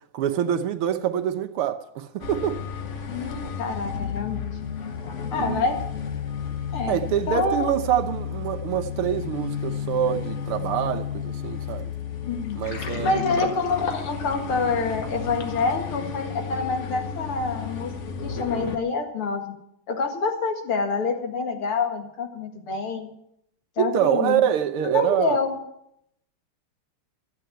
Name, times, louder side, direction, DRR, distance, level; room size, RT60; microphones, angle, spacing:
voice 1, 0.1-2.6 5.4-5.7 6.9-11.9 12.6-13.2 23.8-25.4, right 10 dB, 80° right, 1.9 m, -25 dB
sound 1, 2.2-18.8, left 7 dB, 45° left, 1.1 m, -33 dB
voice 2, 3.1-4.5 5.3-5.8 6.7-7.0 7.3-7.7 12.2-12.6 13.0-17.9 18.2-19.5 19.9-23.1 23.8-24.4 24.8-25.6, left 4 dB, 75° left, 2.9 m, -27 dB
Water, 12.4-15.6, left 2 dB, 60° left, 2.5 m, -36 dB
13.0 x 8.9 x 9.2 m
omnidirectional pair, 2.4 m